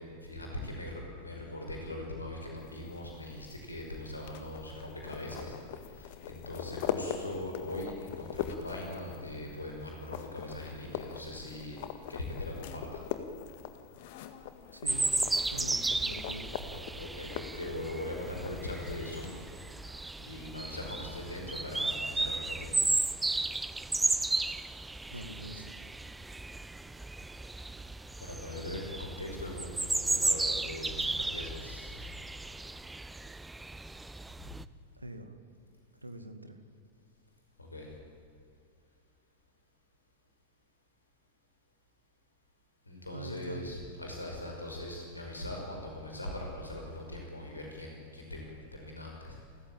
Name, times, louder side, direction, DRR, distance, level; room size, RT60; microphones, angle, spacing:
voice 1, 0.0-5.6 5.9-11.8 12.1-13.0 17.0-19.3 20.2-22.8 28.2-32.0 37.6-37.9 42.9-49.4, left 1 dB, 80° left, 1 dB, 5.4 m, -41 dB
sound 1, 2.6-19.3, left 9 dB, 50° left, 1.8 m, -42 dB
voice 2, 14.7-15.1 15.4-16.5 25.1-25.8 34.9-35.4 36.0-36.6 43.1-43.7, right 1 dB, 85° right, 8 dB, 2.0 m, -43 dB
sound 2, 14.8-34.6, right 2 dB, 10° right, 0.6 m, -34 dB
29.5 x 15.0 x 8.9 m, 2.4 s
figure-of-eight pair, 90°, 0 cm